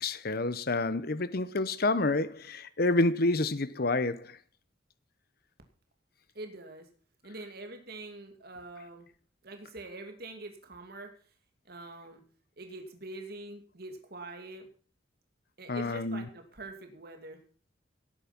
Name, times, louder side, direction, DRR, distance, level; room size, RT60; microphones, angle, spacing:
voice 1, 0.0-4.4 15.7-16.3, left 2 dB, 55° left, 0.9 m, -28 dB
voice 2, 6.3-6.9 7.2-9.1 9.4-11.1 11.7-12.2 12.6-14.7 15.6-17.4, right 2 dB, 55° right, 2.5 m, -44 dB
17.5 x 9.0 x 5.9 m
head